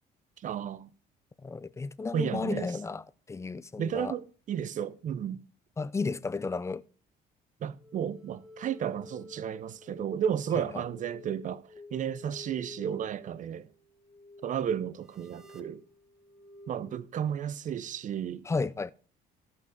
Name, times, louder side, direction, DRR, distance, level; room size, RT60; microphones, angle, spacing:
voice 1, 0.4-0.9 2.1-2.7 3.8-5.4 7.6-13.7 14.4-15.8 16.7-18.5, right 9 dB, 50° right, 0.7 m, -33 dB
voice 2, 1.4-4.1 5.8-6.8 10.5-10.8 18.5-18.9, left 4 dB, 15° left, 0.5 m, -33 dB
sound 1, 7.8-17.0, left 3 dB, ahead, 1.3 m, -51 dB
14.5 x 5.6 x 5.1 m
cardioid pair, 110°, 17 cm